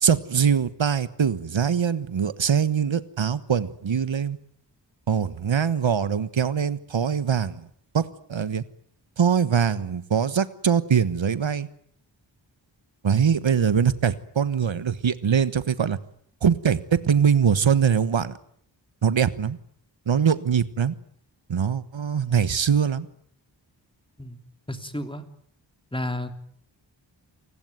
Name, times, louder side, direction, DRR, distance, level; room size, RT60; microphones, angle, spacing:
voice 1, 0.0-4.4 5.1-7.7 7.9-8.6 9.2-11.7 13.0-16.0 16.4-18.3 19.0-19.6 20.1-20.9 21.5-23.1, right 7 dB, 90° right, 14 dB, 1.4 m, -22 dB
voice 2, 24.7-25.2 25.9-26.4, left 1 dB, 10° left, 7 dB, 3.2 m, -31 dB
29.0 x 20.5 x 9.4 m, 0.65 s
wide cardioid pair, 70°, 44 cm